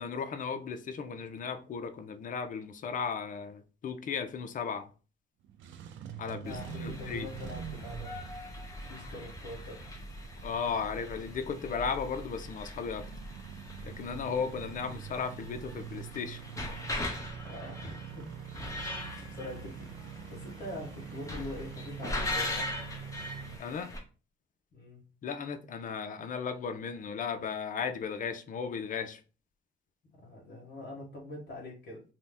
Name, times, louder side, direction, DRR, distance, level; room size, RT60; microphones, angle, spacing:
voice 1, 0.0-4.9 6.2-7.3 10.4-13.1 13.8-16.4 23.6-23.9 25.2-29.2, left 6 dB, 45° left, 0.4 m, -35 dB
Engine starting, 5.4-23.6, right 8 dB, 70° right, 0.4 m, -45 dB
voice 2, 6.2-8.1 8.8-10.0 14.4-14.6 17.4-18.3 19.2-22.7 24.7-25.0 30.1-32.0, left 2 dB, 60° left, 1.0 m, -44 dB
sound 1, 6.5-24.0, left 1 dB, 15° left, 0.8 m, -41 dB
2.7 x 2.1 x 3.3 m
cardioid pair, 90°, 20 cm